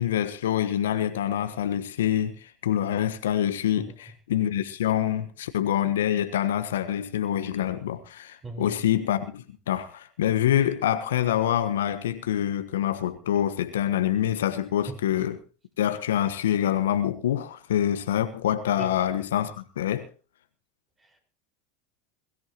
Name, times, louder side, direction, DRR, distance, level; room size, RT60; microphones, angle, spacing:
voice 1, 0.0-2.3 2.6-15.4 15.8-20.1, left 10 dB, 75° left, 1.2 m, -26 dB
voice 2, 8.4-8.8 14.9-15.0 18.8-18.9 21.0-21.2, right 2 dB, 20° right, 5.1 m, -38 dB
22.5 x 14.0 x 3.0 m
hypercardioid pair, 85°, 0 cm